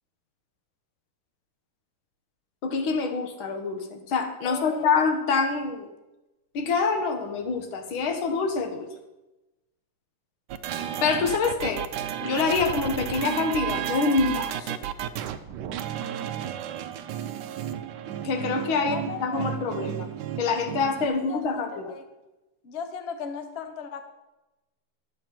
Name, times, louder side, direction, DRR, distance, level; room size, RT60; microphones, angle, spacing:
voice 1, 2.6-5.9 6.5-8.9 11.0-11.8 12.2-14.8 18.2-20.1 20.4-21.9, left 4 dB, 70° left, 6 dB, 1.8 m, -26 dB
voice 2, 4.4-5.0 18.8-19.5 21.0-22.0 22.6-24.0, left 6 dB, 85° left, 8 dB, 0.5 m, -37 dB
sound 1, 10.5-21.1, right 10 dB, 80° right, 0.9 m, -33 dB
10.5 x 7.1 x 4.4 m, 1.0 s
omnidirectional pair, 2.4 m